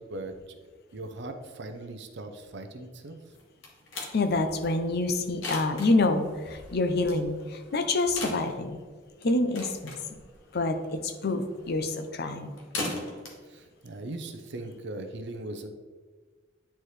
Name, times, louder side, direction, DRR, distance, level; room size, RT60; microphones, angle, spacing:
voice 1, 0.0-3.2 13.5-15.7, right 2 dB, 60° right, 6 dB, 0.7 m, -39 dB
sound 1, 3.3-14.8, left 2 dB, 80° left, 1.3 m, -41 dB
voice 2, 4.1-8.8 9.2-10.0 10.5-12.6, left 2 dB, 55° left, 8 dB, 0.6 m, -27 dB
9.3 x 4.3 x 3.2 m, 1.5 s
head